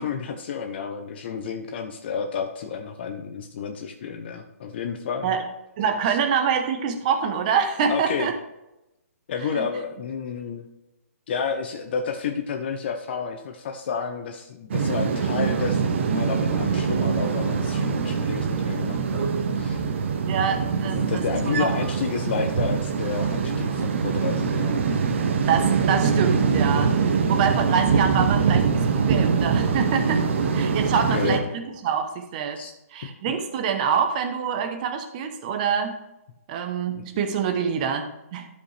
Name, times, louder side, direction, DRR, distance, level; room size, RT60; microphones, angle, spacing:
voice 1, 0.0-5.4 6.1-6.2 7.9-8.3 9.3-10.7 11.3-19.8 20.9-25.0 30.7-31.5 32.6-32.7 33.3-33.4 36.9-37.1, left 6 dB, 40° left, 5 dB, 0.7 m, -31 dB
voice 2, 5.8-8.4 9.5-9.7 20.3-21.2 21.6-21.7 25.5-26.9 27.3-30.3 30.5-32.6 32.9-36.0 36.5-38.5, right 7 dB, 30° right, 6 dB, 1.0 m, -25 dB
sound 1, 14.7-31.4, right 5 dB, 50° right, 1.0 m, -23 dB
12.5 x 5.1 x 3.3 m, 0.91 s
hypercardioid pair, 160°, 8 cm